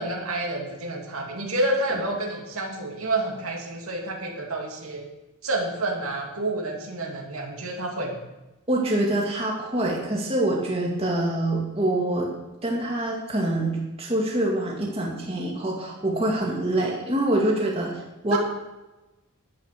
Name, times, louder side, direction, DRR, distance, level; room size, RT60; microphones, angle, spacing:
voice 1, 0.0-5.0 5.4-8.1 18.3-18.4, right 2 dB, 75° right, 0 dB, 2.5 m, -29 dB
voice 2, 8.7-12.3 12.6-18.4, right 1 dB, 25° right, -2 dB, 2.4 m, -25 dB
11.0 x 7.8 x 6.6 m, 1.0 s
head